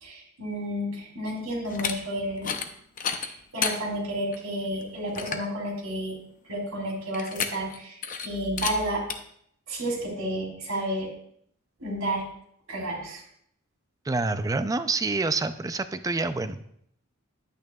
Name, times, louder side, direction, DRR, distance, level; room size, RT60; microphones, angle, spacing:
voice 1, 0.0-2.5 3.1-6.2 6.4-9.0 9.7-11.1 11.8-12.2 12.7-13.2, right 1 dB, 90° right, -1 dB, 3.2 m, -31 dB
sound 1, 1.7-1.9 2.4-2.7 3.0-3.8 4.3-4.4 4.8-4.9 5.2-5.5 7.1-7.8 8.0-8.3 8.6-8.7 9.1-9.2, left 6 dB, 40° left, 0.6 m, -30 dB
voice 2, 14.0-16.6, right 3 dB, 15° right, 11 dB, 0.4 m, -27 dB
10.5 x 9.1 x 2.3 m, 0.68 s
head